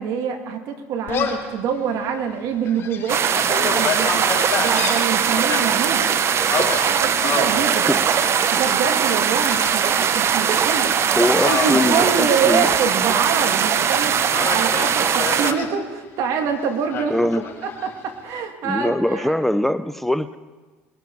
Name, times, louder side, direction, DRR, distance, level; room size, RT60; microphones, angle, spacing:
voice 1, 0.0-3.2 3.5-4.3 4.6-6.1 6.8-7.9 8.5-11.0 11.5-14.2 14.5-17.2 17.6-19.4, right 6 dB, 65° right, 5 dB, 2.2 m, -25 dB
Gull seagull, 1.1-1.5 2.0-2.1 2.6-5.6 6.5-7.6 8.2-8.6 9.5-10.2 10.5-10.8 11.3-12.9 13.2-13.9 14.3-15.7 16.9-17.9, left 6 dB, 40° left, 3.9 m, -28 dB
sound 1, 3.1-15.5, right 7 dB, 45° right, 0.9 m, -20 dB
voice 2, 11.2-12.7 17.1-17.4 18.6-20.4, left 1 dB, 5° left, 13 dB, 0.5 m, -22 dB
21.5 x 12.5 x 4.7 m, 1.3 s
supercardioid pair, 85°, 6 cm